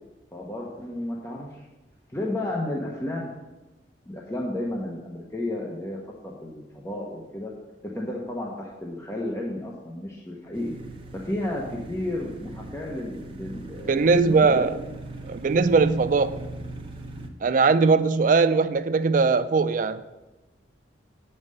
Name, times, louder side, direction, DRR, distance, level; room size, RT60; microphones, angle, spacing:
voice 1, 0.3-1.7 2.1-3.3 4.1-6.0 6.2-7.5 7.8-10.7 11.1-14.9, left 1 dB, 15° left, -3 dB, 1.0 m, -32 dB
sound 1, 10.5-17.3, right 2 dB, 30° right, 0.8 m, -40 dB
voice 2, 13.9-14.7 15.3-16.3 17.4-20.0, right 4 dB, 45° right, 13 dB, 0.4 m, -20 dB
8.9 x 5.5 x 6.5 m, 1.1 s
head